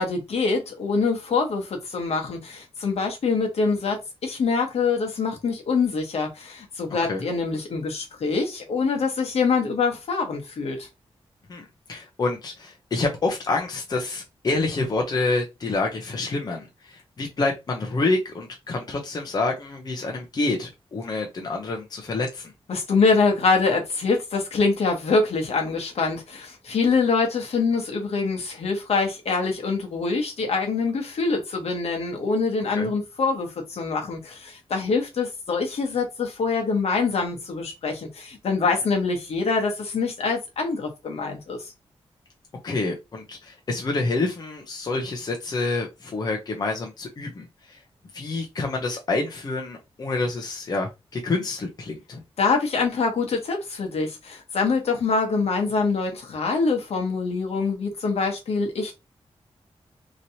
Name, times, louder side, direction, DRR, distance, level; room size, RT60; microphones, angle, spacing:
voice 1, 0.0-10.9 22.7-41.7 52.4-58.9, left 4 dB, 70° left, 1.0 m, -25 dB
voice 2, 11.5-22.5 32.8-32.9 42.6-47.8 48.1-52.2, left 3 dB, 40° left, 0.6 m, -28 dB
3.0 x 2.7 x 2.7 m
wide cardioid pair, 165°, 11 cm